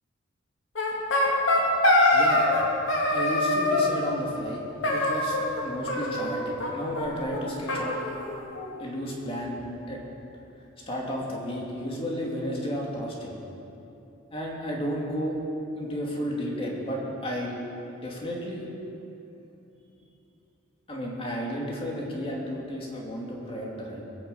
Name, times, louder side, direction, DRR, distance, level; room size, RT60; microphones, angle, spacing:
sound 1, 0.7-2.6 2.9-3.9 4.8-5.6 5.9-6.7 7.0-7.1 7.3-7.4 7.7-8.7, left 1 dB, 70° left, 2.8 m, -24 dB
voice 1, 2.1-2.4 3.1-4.6 4.9-8.0 8.8-9.6 9.9-10.0 10.9-13.3 14.3-15.4 15.8-17.6 18.0-18.7 20.9-24.0, equal, 30° left, -3 dB, 2.6 m, -32 dB
21.0 x 7.4 x 8.1 m, 2.9 s
head